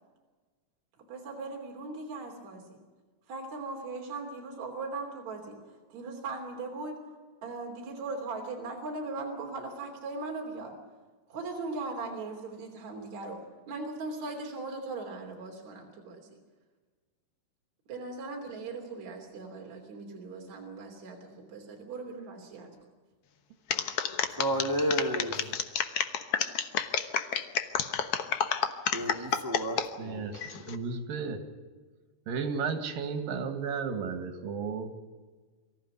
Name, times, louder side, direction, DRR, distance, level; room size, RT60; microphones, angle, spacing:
voice 1, 1.0-2.8 3.3-7.0 7.4-10.8 11.3-13.4 13.7-16.3 17.9-22.8, right 3 dB, 55° right, 1 dB, 4.4 m, -39 dB
sound 1, 23.7-29.9 30.3-30.8, left 8 dB, 60° left, 1.6 m, -29 dB
voice 2, 24.4-25.5 28.9-30.3, equal, 10° right, 3 dB, 1.0 m, -31 dB
voice 3, 30.0-31.4 32.3-34.9, right 5 dB, 85° right, 8 dB, 3.7 m, -34 dB
24.0 x 15.0 x 9.6 m, 1.4 s
omnidirectional pair, 3.9 m